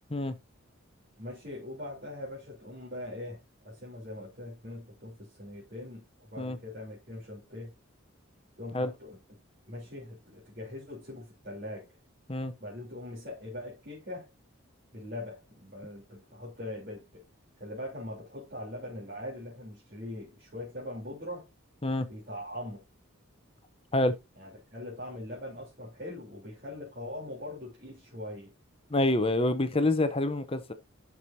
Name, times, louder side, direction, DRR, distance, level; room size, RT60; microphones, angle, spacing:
voice 1, 1.2-7.7 8.6-9.2 9.7-11.9 12.6-14.3 14.9-17.2 17.6-21.5 22.1-22.8 24.4-28.5, left 1 dB, 45° right, 3.7 m, -41 dB
voice 2, 28.9-30.7, left 1 dB, 25° left, 0.8 m, -27 dB
11.5 x 6.2 x 2.8 m
head